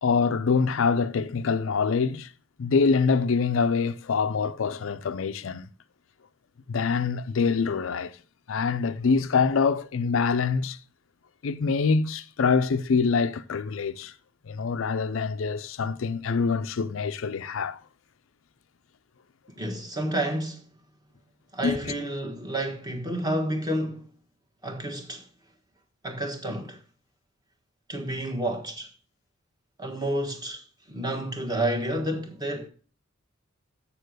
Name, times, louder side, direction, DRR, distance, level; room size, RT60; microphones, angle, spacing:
voice 1, 0.0-2.3 2.6-5.6 6.7-8.1 8.5-10.8 11.4-14.1 14.5-17.8 21.6-21.9, left 5 dB, 65° left, 0.5 m, -25 dB
voice 2, 19.6-20.6 21.5-24.0 24.6-25.2 26.0-26.8 27.9-28.9 29.8-32.7, right 1 dB, 20° right, 1.4 m, -30 dB
7.0 x 6.7 x 6.4 m
head